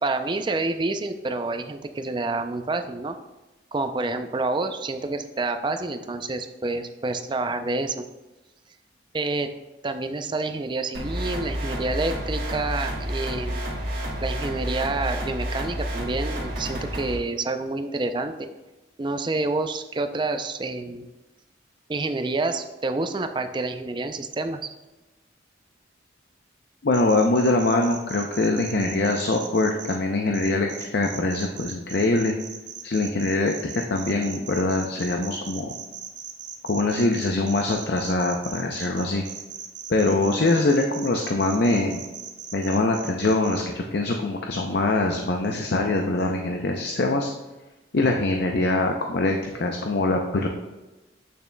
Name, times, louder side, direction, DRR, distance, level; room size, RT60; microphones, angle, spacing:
voice 1, 0.0-3.2 3.7-8.0 9.1-9.5 9.8-13.7 14.2-18.5 19.0-21.1 21.9-24.7, right 2 dB, 25° right, 8 dB, 0.4 m, -28 dB
sound 1, 10.9-17.1, equal, 45° right, 2.2 m, -30 dB
voice 2, 26.8-32.3 32.8-35.7 36.6-39.2 39.9-42.0 42.5-47.3 47.9-50.5, left 2 dB, 55° left, 2 dB, 0.5 m, -23 dB
sound 2, 26.9-29.9 30.3-43.6, right 8 dB, 70° right, 0.8 m, -38 dB
8.5 x 6.9 x 2.2 m, 1.1 s
head